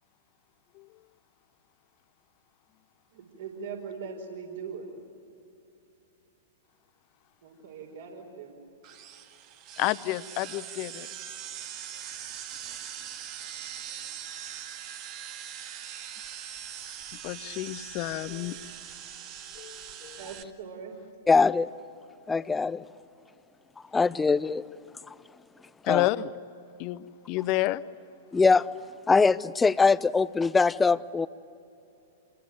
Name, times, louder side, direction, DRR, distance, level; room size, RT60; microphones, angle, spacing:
voice 1, 3.1-4.9 7.4-8.5 20.2-21.0, right 6 dB, 60° right, 3 dB, 4.9 m, -40 dB
sound 1, 8.8-20.4, right 10 dB, 40° right, 1.9 m, -41 dB
voice 2, 9.8-11.1 17.2-18.6 19.6-20.2 22.3-22.5 25.9-26.3 26.8-27.8, left 17 dB, 40° left, 16 dB, 0.9 m, -30 dB
voice 3, 21.3-21.7 22.3-22.8 23.9-24.6 25.9-26.1 28.3-28.7 29.1-31.3, left 4 dB, 10° left, 17 dB, 0.6 m, -22 dB
27.5 x 22.0 x 9.6 m, 2.8 s
figure-of-eight pair, 105°, 0 cm